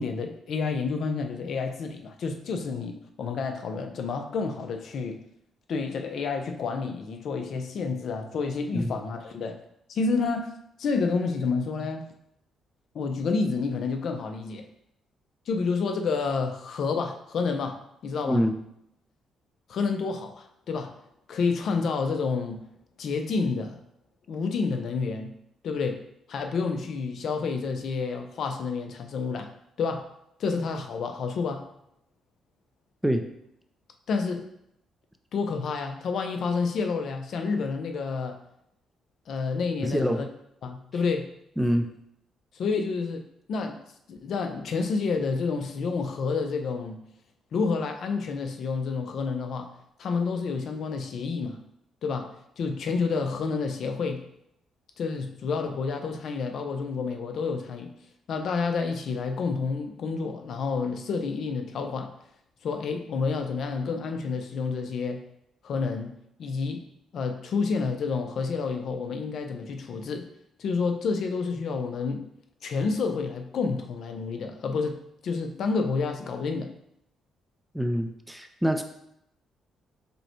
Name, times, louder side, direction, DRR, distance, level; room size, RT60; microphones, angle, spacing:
voice 1, 0.0-5.2 5.7-9.6 9.9-10.5 10.8-12.0 12.9-14.7 15.5-18.4 19.7-20.9 21.3-22.6 23.0-23.8 24.3-25.3 25.6-26.0 26.3-29.5 29.8-30.1 30.4-31.7 34.1-34.4 35.3-38.4 39.3-40.3 40.6-41.3 42.5-43.2 43.5-43.8 44.1-47.0 47.5-49.7 50.0-51.6 52.0-54.2 55.0-57.9 58.3-62.1 62.6-65.2 65.6-66.1 66.4-66.8 67.1-70.3 70.6-72.2 72.6-75.0 75.2-76.7, left 4 dB, 65° left, 5 dB, 0.6 m, -29 dB
voice 2, 39.8-40.2 41.6-41.9 77.7-78.8, equal, 5° right, 5 dB, 0.4 m, -25 dB
5.3 x 2.2 x 4.3 m, 0.77 s
cardioid pair, 90°, 0 cm